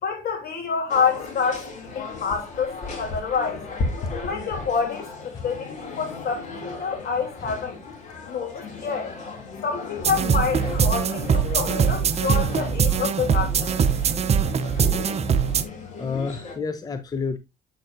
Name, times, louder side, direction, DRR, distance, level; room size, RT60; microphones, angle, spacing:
voice 1, 0.0-3.6 4.2-7.8 8.3-9.1 9.6-13.8, left 6 dB, 65° left, 3.3 m, -27 dB
sound 1, 0.9-16.6, left 3 dB, 45° left, 2.7 m, -36 dB
sound 2, 10.0-15.6, right 7 dB, 40° right, 0.8 m, -22 dB
voice 2, 16.0-17.4, left 5 dB, 20° left, 0.7 m, -29 dB
7.6 x 6.9 x 2.6 m
cardioid pair, 110°, 17 cm